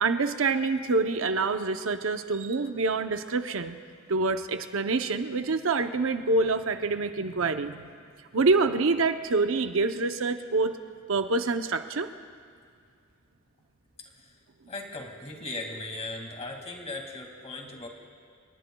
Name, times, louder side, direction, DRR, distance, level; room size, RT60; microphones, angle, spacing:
voice 1, 0.0-3.8 4.1-7.9 8.3-10.7 11.1-12.1, right 3 dB, 80° right, 8 dB, 0.7 m, -26 dB
voice 2, 14.7-17.9, left 2 dB, 30° left, 2 dB, 2.2 m, -38 dB
29.0 x 18.5 x 2.3 m, 2.2 s
head